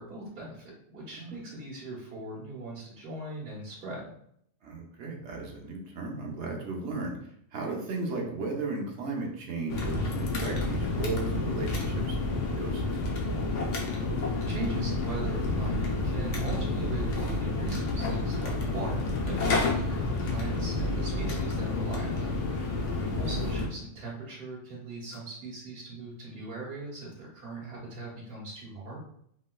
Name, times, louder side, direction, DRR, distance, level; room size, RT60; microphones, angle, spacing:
voice 1, 0.0-4.1 14.5-29.0, right 2 dB, 55° right, -7 dB, 1.3 m, -40 dB
voice 2, 4.6-13.1, right 3 dB, 75° right, 0 dB, 0.9 m, -36 dB
sound 1, 9.7-23.7, left 2 dB, 85° left, 1.0 m, -29 dB
3.1 x 3.0 x 2.2 m, 0.69 s
omnidirectional pair, 1.2 m